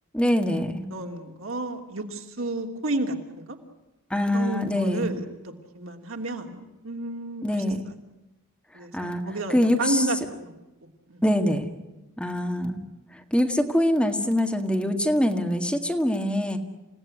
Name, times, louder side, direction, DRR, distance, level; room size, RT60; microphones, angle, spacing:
voice 1, 0.1-0.9 4.1-5.1 7.4-7.8 8.9-9.2 9.5-10.1 11.2-11.6 12.2-12.8 13.3-16.6, left 1 dB, 5° left, 4 dB, 1.8 m, -24 dB
voice 2, 0.9-3.6 4.3-7.6 8.7-10.6 11.1-11.2, right 2 dB, 70° right, 3 dB, 2.9 m, -31 dB
29.0 x 17.0 x 9.8 m, 1.0 s
head